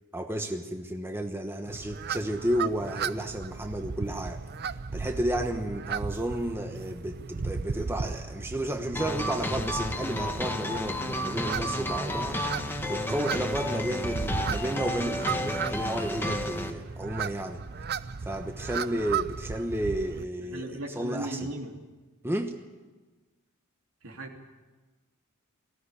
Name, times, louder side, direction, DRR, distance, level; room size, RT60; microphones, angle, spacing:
voice 1, 0.1-4.4 4.9-17.6 18.2-21.5 22.2-22.6, right 1 dB, 10° right, 5 dB, 1.1 m, -32 dB
sound 1, 1.7-20.2, right 5 dB, 50° right, 0.6 m, -36 dB
sound 2, 9.0-16.7, left 1 dB, 10° left, 1.4 m, -32 dB
voice 2, 20.4-21.8 24.0-24.4, right 1 dB, 65° right, 2 dB, 3.1 m, -37 dB
19.0 x 16.0 x 10.0 m, 1.3 s
head